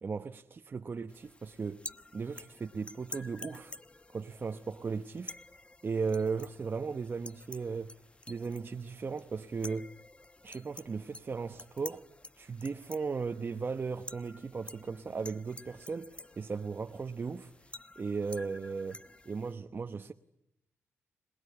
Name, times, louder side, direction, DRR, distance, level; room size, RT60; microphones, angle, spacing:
voice 1, 0.0-1.8 2.1-3.7 4.1-5.4 5.8-7.9 8.3-9.9 10.4-12.1 12.4-17.5 18.0-20.1, right 5 dB, 40° right, 1.0 m, -36 dB
sound 1, 1.1-19.5, left 2 dB, 25° left, 1.1 m, -50 dB
26.5 x 19.5 x 9.7 m
cardioid pair, 75°, 5 cm